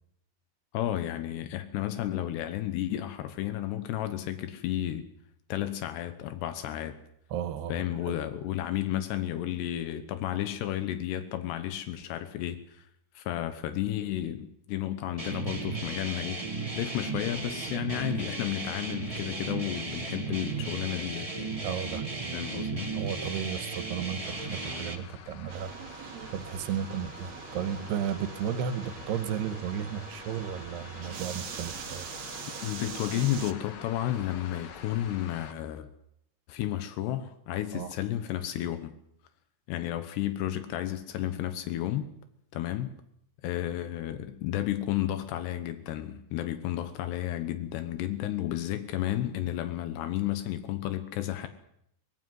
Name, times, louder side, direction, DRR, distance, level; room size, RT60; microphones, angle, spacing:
voice 1, 0.7-5.1 5.5-7.0 7.7-12.9 13.1-21.6 22.3-22.9 32.6-35.9 36.5-38.9 39.7-42.1 42.5-42.9 43.4-51.5, left 12 dB, 85° left, 9 dB, 3.3 m, -32 dB
voice 2, 7.3-8.1 21.6-22.3 22.9-25.7 26.3-32.1 37.7-37.9, right 8 dB, 85° right, 11 dB, 3.3 m, -34 dB
sound 1, 15.2-25.0, right 4 dB, 35° right, 0.5 m, -35 dB
sound 2, 24.2-35.5, left 7 dB, 60° left, 2.9 m, -47 dB
sound 3, 25.5-33.5, right 8 dB, 60° right, 2.1 m, -43 dB
24.5 x 18.0 x 7.9 m, 0.74 s
omnidirectional pair, 4.7 m